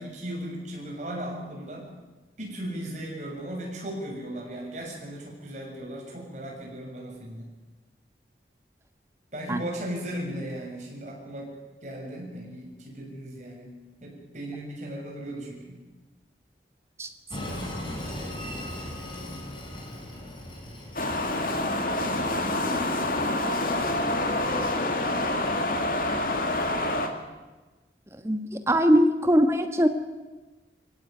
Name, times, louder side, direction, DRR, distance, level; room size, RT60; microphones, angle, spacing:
voice 1, 0.0-1.9 2.4-7.5 9.3-11.5 11.8-13.7 14.0-15.8, right 1 dB, 40° right, -1 dB, 7.0 m, -36 dB
Train, 17.3-26.3, left 1 dB, 30° left, 4.8 m, -40 dB
sound 1, 21.0-27.1, left 1 dB, 50° left, 2.6 m, -27 dB
voice 2, 28.2-29.9, equal, 15° right, 7 dB, 1.5 m, -21 dB
24.5 x 16.0 x 9.7 m, 1.2 s
head